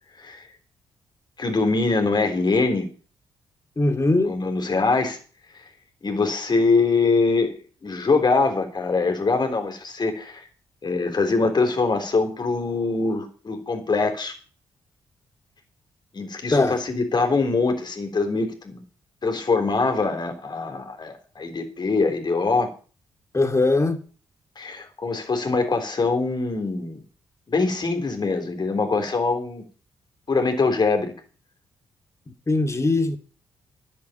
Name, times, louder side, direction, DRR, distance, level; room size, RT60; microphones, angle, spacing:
voice 1, 1.4-2.9 4.2-5.2 6.0-10.5 10.8-14.3 16.1-18.8 19.2-22.7 24.6-27.0 27.5-29.6 30.3-31.1, left 3 dB, 45° left, 3.9 m, -23 dB
voice 2, 3.8-4.3 16.5-16.8 23.3-24.0 32.5-33.2, left 2 dB, 25° left, 2.4 m, -20 dB
11.0 x 7.7 x 8.9 m
hypercardioid pair, 50°, 10 cm